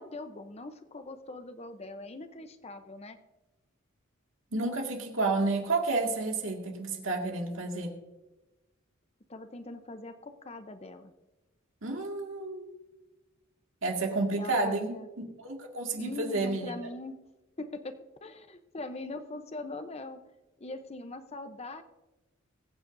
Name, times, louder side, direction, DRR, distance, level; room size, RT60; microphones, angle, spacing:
voice 1, 0.0-3.2 9.3-11.1 14.3-15.1 16.0-17.2 17.6-20.2 20.6-21.8, left 2 dB, 30° left, 8 dB, 0.8 m, -41 dB
voice 2, 4.5-7.9 11.8-12.7 13.8-14.9 15.4-16.7, right 3 dB, 70° right, 1 dB, 2.1 m, -30 dB
22.0 x 8.9 x 2.7 m, 1.1 s
head